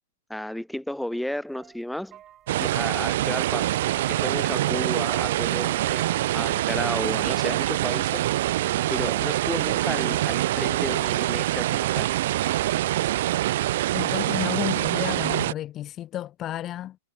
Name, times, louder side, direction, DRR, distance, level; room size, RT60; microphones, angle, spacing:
voice 1, 0.3-2.2 2.6-3.7 3.9-8.2 8.9-12.1, left 1 dB, ahead, 1.1 m, -33 dB
sound 1, 1.5-12.7, right 11 dB, 30° right, 3.4 m, -53 dB
sound 2, 2.5-15.5, right 14 dB, 60° right, 0.3 m, -25 dB
voice 2, 13.9-17.0, left 12 dB, 30° left, 1.4 m, -32 dB
hypercardioid pair, 115°, 0 cm